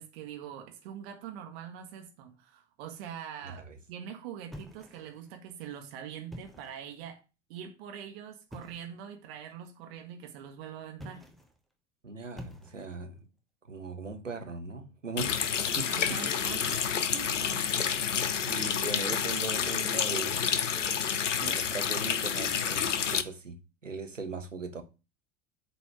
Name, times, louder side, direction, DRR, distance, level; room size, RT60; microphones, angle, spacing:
voice 1, 0.0-7.2 7.5-11.3 15.7-17.5, right 9 dB, 55° right, 1.7 m, -44 dB
sound 1, 4.5-5.3 6.2-6.9 8.5-8.9 10.9-11.6 12.3-13.1, left 1 dB, ahead, 1.1 m, -47 dB
voice 2, 12.0-13.2 13.7-16.2 17.5-17.8 18.4-20.4 21.3-24.8, right 3 dB, 90° right, 1.2 m, -39 dB
Water tap faucet, 15.2-23.2, left 7 dB, 80° left, 0.8 m, -29 dB
8.2 x 4.1 x 5.9 m
figure-of-eight pair, 80°, 37 cm